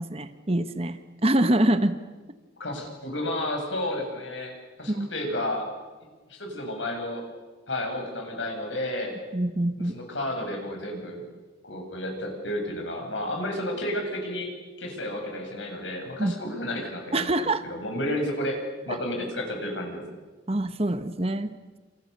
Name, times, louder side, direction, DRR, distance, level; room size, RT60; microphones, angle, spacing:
voice 1, 0.0-2.0 4.9-5.1 9.3-10.0 16.2-16.3 17.1-17.6 18.9-19.0 20.5-21.5, right 1 dB, 30° right, 10 dB, 1.3 m, -25 dB
voice 2, 2.6-5.7 6.3-7.3 7.7-9.2 9.9-11.2 11.6-14.5 14.8-18.6 18.9-20.0, left 1 dB, 85° left, 2 dB, 7.6 m, -31 dB
29.0 x 28.5 x 6.8 m, 1.3 s
head